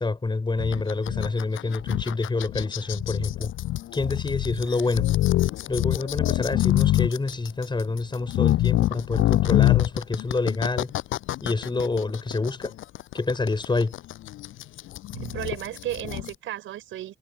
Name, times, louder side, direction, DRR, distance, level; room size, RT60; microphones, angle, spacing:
voice 1, 0.0-3.5 3.9-5.1 5.7-10.9 11.4-12.7 13.1-13.9, left 3 dB, 25° left, 6.3 m, -27 dB
sound 1, 0.6-16.3, left 15 dB, 90° left, 6.7 m, -25 dB
voice 2, 15.1-17.2, right 13 dB, 80° right, 5.8 m, -34 dB
cardioid pair, 90°, 20 cm